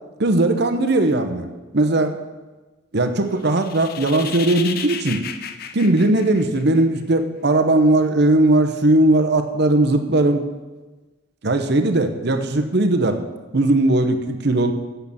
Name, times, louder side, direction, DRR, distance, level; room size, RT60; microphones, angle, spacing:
voice 1, 0.2-1.5 1.7-2.2 2.9-5.2 5.7-10.4 11.4-13.2 13.5-14.7, right 2 dB, 55° right, 8 dB, 0.9 m, -18 dB
sound 1, 3.4-7.0, left 7 dB, 50° left, 0.6 m, -33 dB
8.4 x 6.8 x 7.0 m, 1.2 s
head